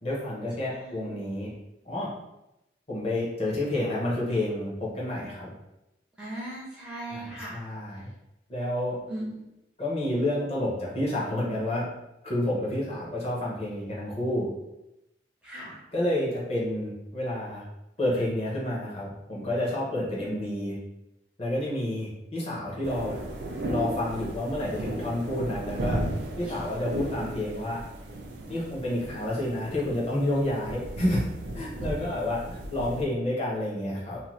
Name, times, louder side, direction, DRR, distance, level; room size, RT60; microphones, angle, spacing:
voice 1, 0.0-1.5 1.9-2.1 2.9-5.5 7.1-8.1 8.5-9.0 9.8-11.9 12.2-14.5 15.9-17.6 18.0-20.8 21.4-23.2 23.7-26.0 26.4-27.8 28.5-31.3 31.5-34.2, left 1 dB, 35° left, -6 dB, 0.8 m, -29 dB
voice 2, 0.7-1.2 6.2-7.6 9.1-9.4 15.4-15.8 26.4-26.6, right 1 dB, 5° right, -6 dB, 0.4 m, -38 dB
sound 1, 22.8-33.0, right 1 dB, 65° right, 0.4 m, -35 dB
2.7 x 2.1 x 3.1 m, 0.90 s
head